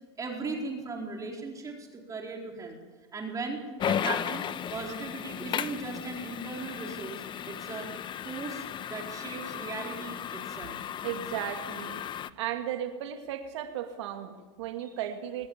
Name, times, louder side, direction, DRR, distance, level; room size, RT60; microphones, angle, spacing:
voice 1, 0.2-2.8 3.1-4.4 4.7-7.9 8.2-10.8, right 3 dB, 20° right, 1 dB, 4.4 m, -38 dB
sound 1, 3.8-12.3, left 9 dB, 30° left, 1.0 m, -35 dB
voice 2, 11.0-12.0 12.4-15.5, right 10 dB, 70° right, 6 dB, 2.2 m, -35 dB
22.5 x 20.0 x 8.8 m, 1.3 s
hypercardioid pair, 105°, 15 cm